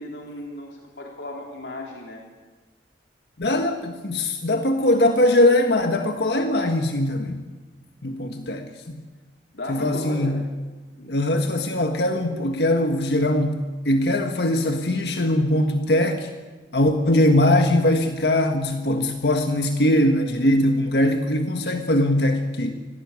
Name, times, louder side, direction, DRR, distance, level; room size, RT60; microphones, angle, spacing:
voice 1, 0.0-2.2 9.5-10.4 11.0-11.2 11.6-11.8, left 1 dB, 85° left, 0 dB, 3.6 m, -36 dB
voice 2, 3.4-7.4 8.0-9.0 9.7-10.4 11.1-16.3 16.7-22.7, left 1 dB, 65° left, 5 dB, 1.6 m, -21 dB
25.0 x 17.5 x 8.4 m, 1.3 s
head